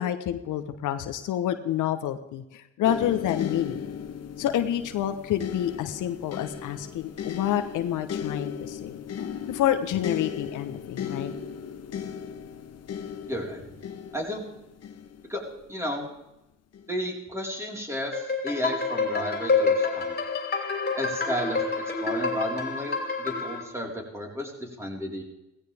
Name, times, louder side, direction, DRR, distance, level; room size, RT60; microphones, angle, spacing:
voice 1, 0.0-3.8 4.4-9.0 9.5-11.3, left 11 dB, 85° left, 7 dB, 1.2 m, -28 dB
sound 1, 2.8-15.9 16.7-16.9, left 8 dB, 55° left, 1.3 m, -36 dB
voice 2, 13.3-13.6 14.1-14.4 15.3-15.4 15.7-16.1 16.9-20.1 21.0-25.2, equal, 10° right, -1 dB, 4.5 m, -33 dB
sound 2, 18.1-23.6, left 4 dB, 35° left, 3.5 m, -27 dB
17.0 x 15.5 x 3.6 m, 0.92 s
cardioid pair, 90°, 30 cm